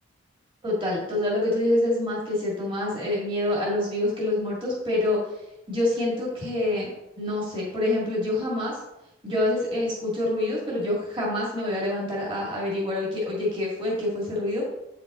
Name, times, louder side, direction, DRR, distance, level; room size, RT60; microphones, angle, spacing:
voice 1, 0.6-5.2 5.7-6.9 7.2-8.8 9.2-14.6, left 1 dB, 25° right, -5 dB, 2.0 m, -26 dB
8.3 x 5.8 x 3.8 m, 0.92 s
head